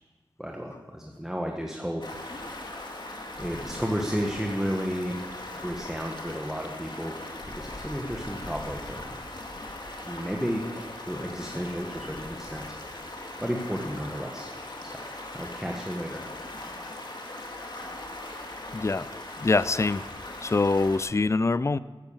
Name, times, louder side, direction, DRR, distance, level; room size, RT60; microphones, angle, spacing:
voice 1, 0.4-2.0 2.7-2.9 3.4-7.2 7.6-9.2 10.0-13.0 13.4-14.5 14.8-15.0 15.3-16.2, equal, 5° right, 1 dB, 1.5 m, -33 dB
Stream, 2.0-21.0, left 2 dB, 55° left, 2.1 m, -39 dB
voice 2, 18.7-20.0 20.4-21.8, left 3 dB, 30° left, 17 dB, 0.4 m, -25 dB
14.5 x 10.5 x 7.2 m, 1.4 s
wide cardioid pair, 55°, 9 cm